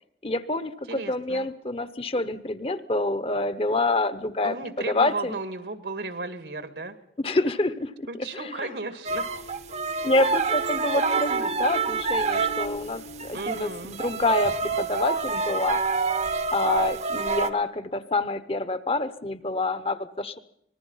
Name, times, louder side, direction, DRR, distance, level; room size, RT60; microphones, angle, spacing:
voice 1, 0.2-4.6 4.9-5.4 7.2-8.1 8.3-8.7 10.0-15.8 16.5-20.4, left 2 dB, 35° left, 12 dB, 0.9 m, -27 dB
voice 2, 0.9-1.5 4.4-6.9 8.1-9.3 13.3-14.0, right 3 dB, 75° right, 9 dB, 2.1 m, -34 dB
sound 1, 9.0-12.8 13.2-17.5, right 4 dB, 40° right, 0.9 m, -27 dB
sound 2, 9.1-14.7, left 1 dB, 65° left, 2.0 m, -42 dB
25.5 x 20.0 x 5.7 m, 0.71 s
head